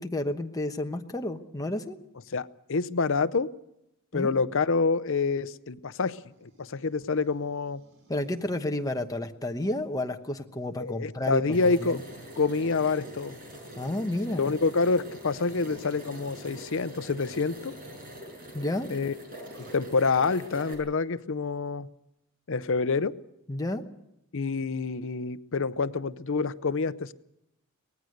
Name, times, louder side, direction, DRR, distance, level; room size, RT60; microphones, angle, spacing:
voice 1, 0.0-2.0 4.1-4.3 8.1-12.0 13.8-14.5 18.5-18.9 23.5-23.8, left 1 dB, 15° left, 5 dB, 1.0 m, -31 dB
voice 2, 2.3-3.5 4.1-7.8 10.8-12.0 12.4-13.4 14.4-17.8 18.9-19.1 19.7-21.9 22.5-23.2 24.3-27.1, left 4 dB, 60° left, 14 dB, 0.7 m, -27 dB
sound 1, 6.3-8.6 10.2-13.2 15.4-16.8 19.2-19.8, right 1 dB, 80° right, 5.5 m, -57 dB
sound 2, 11.5-20.7, equal, 40° right, 6.4 m, -44 dB
24.0 x 19.0 x 6.5 m, 0.84 s
head